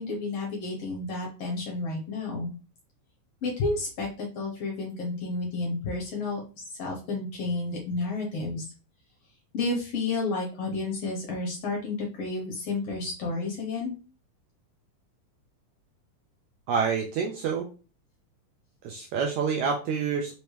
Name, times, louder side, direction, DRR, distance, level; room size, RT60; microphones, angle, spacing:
voice 1, 0.0-2.5 3.4-8.6 9.5-14.0 18.9-19.1, left 3 dB, 60° left, -1 dB, 1.9 m, -31 dB
voice 2, 16.7-17.7 18.8-20.3, right 6 dB, 80° right, 1 dB, 1.7 m, -27 dB
5.3 x 3.0 x 3.2 m, 0.33 s
omnidirectional pair, 3.9 m